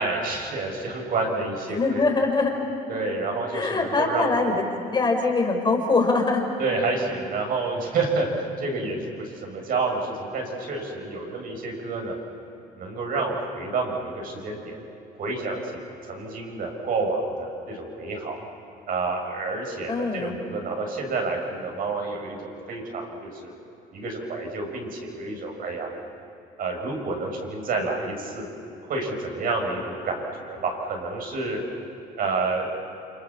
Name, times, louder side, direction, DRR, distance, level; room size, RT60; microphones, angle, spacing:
voice 1, 0.0-2.0 2.9-4.5 6.6-8.3 8.6-12.2 12.8-14.8 15.2-15.6 16.0-18.4 18.9-23.5 23.9-25.9 26.6-28.5 28.9-31.6 32.1-32.7, right 3 dB, 60° right, 1 dB, 7.0 m, -29 dB
voice 2, 1.7-2.5 3.5-6.4 19.9-20.3, left 3 dB, 25° left, 1 dB, 5.3 m, -23 dB
29.5 x 26.0 x 7.4 m, 2.9 s
cardioid pair, 110°, 17 cm